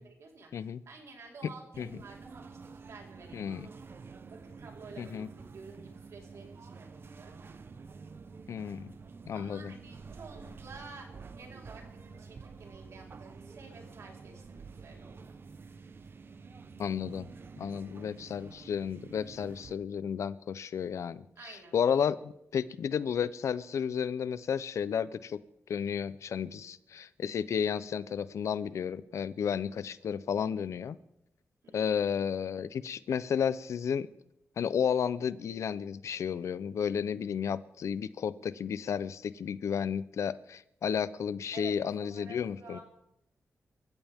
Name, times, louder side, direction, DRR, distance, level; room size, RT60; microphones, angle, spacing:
voice 1, 0.0-3.9 4.3-7.4 9.3-15.4 21.4-21.8 31.6-31.9 41.5-42.8, right 4 dB, 75° right, 0 dB, 4.2 m, -51 dB
voice 2, 0.5-0.8 1.8-1.9 3.3-3.7 5.0-5.3 8.5-8.9 9.3-9.7 16.8-17.3 17.6-25.4 25.7-31.0 31.7-34.1 34.6-42.8, left 7 dB, 80° left, 16 dB, 0.6 m, -32 dB
sound 1, 1.7-19.7, right 5 dB, 50° right, 0.9 m, -49 dB
26.0 x 14.5 x 3.6 m, 0.80 s
wide cardioid pair, 100°, 5 cm